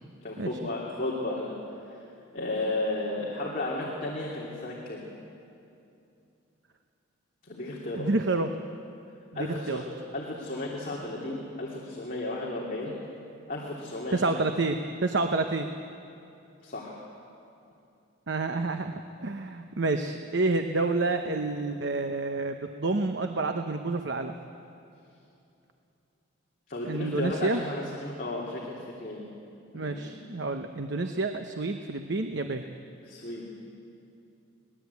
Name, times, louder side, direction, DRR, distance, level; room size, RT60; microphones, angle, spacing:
voice 1, 0.2-1.5 1.9-2.0 2.3-5.0 7.4-8.1 9.3-9.8 10.1-13.0 13.5-14.2 16.6-17.0 26.7-29.3 29.7-30.1 33.0-33.5, left 2 dB, 45° left, -4 dB, 3.0 m, -34 dB
voice 2, 7.9-8.5 9.3-9.8 14.1-15.7 18.3-24.3 26.8-27.6 29.7-32.6, right 3 dB, 60° right, 6 dB, 0.9 m, -29 dB
23.5 x 19.5 x 8.3 m, 2.7 s
head